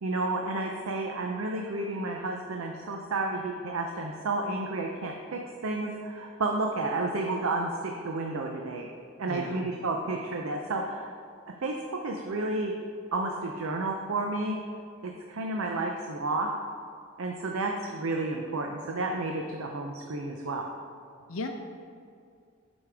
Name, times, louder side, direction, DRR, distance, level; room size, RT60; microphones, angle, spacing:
voice 1, 0.0-8.9 9.2-11.1 11.5-12.7 13.1-14.6 15.0-16.5 17.2-20.7, right 2 dB, 80° right, 2 dB, 0.6 m, -31 dB
voice 2, 9.2-9.7 21.3-21.5, left 3 dB, 75° left, 3 dB, 0.6 m, -35 dB
11.5 x 5.2 x 3.5 m, 2.3 s
head